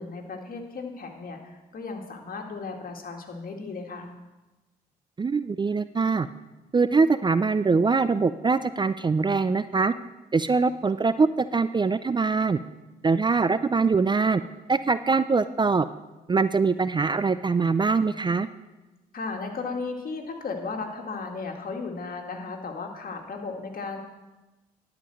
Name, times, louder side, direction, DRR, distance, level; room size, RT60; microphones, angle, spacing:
voice 1, 0.0-4.1 19.1-24.0, left 4 dB, 50° left, 2 dB, 2.0 m, -35 dB
voice 2, 5.2-6.3 6.7-9.9 10.3-12.6 13.0-14.4 14.7-15.9 16.3-18.5, right 4 dB, 25° right, 14 dB, 0.5 m, -23 dB
11.0 x 5.2 x 7.6 m, 1.1 s
hypercardioid pair, 50°, 18 cm